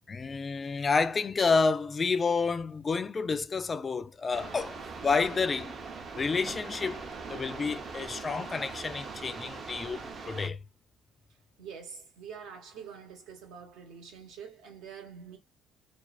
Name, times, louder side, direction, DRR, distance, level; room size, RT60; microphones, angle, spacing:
voice 1, 0.1-5.8 6.1-10.6, left 4 dB, 30° left, 0.3 m, -29 dB
sound 1, 4.3-10.5, right 4 dB, 45° right, 0.5 m, -41 dB
voice 2, 11.6-15.4, right 7 dB, 80° right, 1.0 m, -46 dB
2.3 x 2.3 x 2.3 m
cardioid pair, 90°, 0 cm